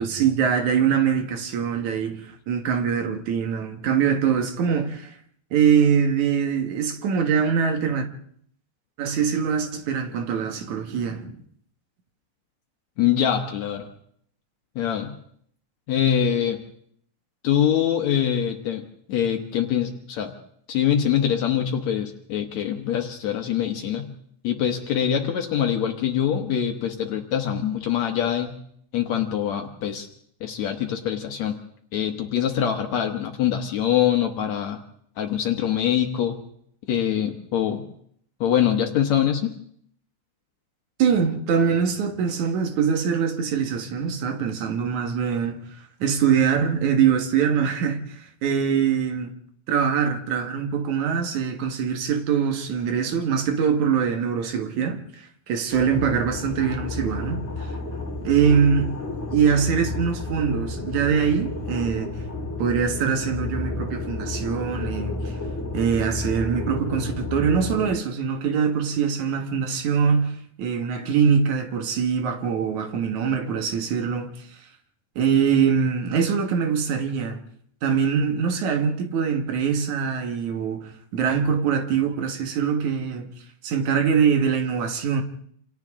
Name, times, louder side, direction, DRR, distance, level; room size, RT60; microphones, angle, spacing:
voice 1, 0.0-5.2 5.5-8.1 9.0-11.4 41.0-45.6 46.0-49.3 49.7-57.4 58.2-58.9 59.3-62.1 62.6-65.3 65.7-74.5 75.2-77.4 77.8-83.3 83.6-85.2, right 7 dB, 80° right, 3.0 m, -23 dB
voice 2, 13.0-13.9 14.8-15.1 15.9-16.6 17.4-18.8 19.1-20.3 20.7-24.1 24.4-28.6 28.9-30.1 30.4-31.6 31.9-34.8 35.2-36.4 36.9-37.8 38.4-39.5, left 9 dB, 70° left, 2.4 m, -24 dB
sound 1, 55.7-67.9, left 2 dB, 20° left, 5.2 m, -31 dB
28.0 x 27.0 x 3.7 m
omnidirectional pair, 3.3 m